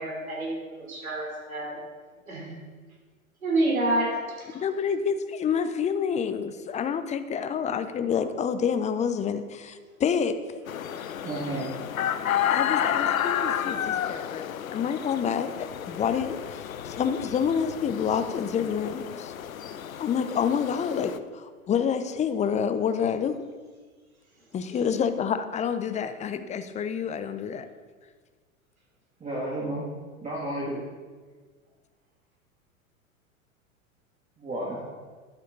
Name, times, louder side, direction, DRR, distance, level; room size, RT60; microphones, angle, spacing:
voice 1, 0.0-1.8 2.3-2.5 3.4-4.1 4.4-4.6 11.0-11.1, right 2 dB, 90° right, -2 dB, 3.2 m, -28 dB
voice 2, 4.5-10.4 12.5-14.5 14.7-19.3 20.0-23.4 24.5-27.7, left 7 dB, 15° left, 10 dB, 0.6 m, -28 dB
sound 1, 10.7-21.2, left 9 dB, 80° left, 0.6 m, -31 dB
voice 3, 11.2-11.7 29.2-29.9 30.2-30.8 34.4-34.9, right 1 dB, 15° right, -5 dB, 1.9 m, -32 dB
11.5 x 8.2 x 3.8 m, 1.5 s
figure-of-eight pair, 90°, 41 cm